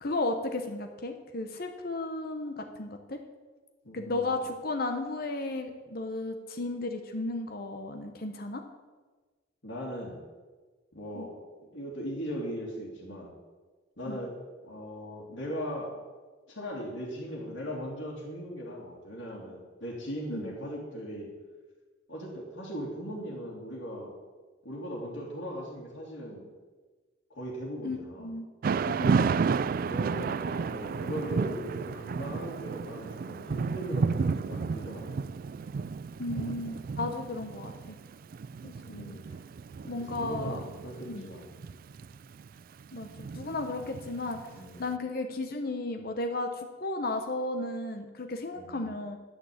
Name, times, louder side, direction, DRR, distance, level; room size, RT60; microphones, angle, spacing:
voice 1, 0.0-3.2 3.9-8.6 11.1-11.3 14.1-14.2 20.3-20.5 27.8-28.5 28.8-29.4 36.2-38.0 38.6-39.2 39.8-40.6 41.0-41.3 42.9-44.4 44.8-49.2, left 2 dB, 50° left, 5 dB, 1.0 m, -34 dB
voice 2, 3.8-4.4 9.6-10.2 10.9-11.4 11.7-13.3 14.0-16.0 16.5-21.3 22.1-24.1 24.6-26.5 27.3-28.3 29.7-35.2 38.8-39.3 40.0-41.5 44.5-44.9 48.6-48.8, equal, 80° left, -6 dB, 2.9 m, -39 dB
Thunder / Rain, 28.6-44.7, right 5 dB, 50° right, 0.3 m, -32 dB
10.5 x 6.5 x 8.6 m, 1.3 s
head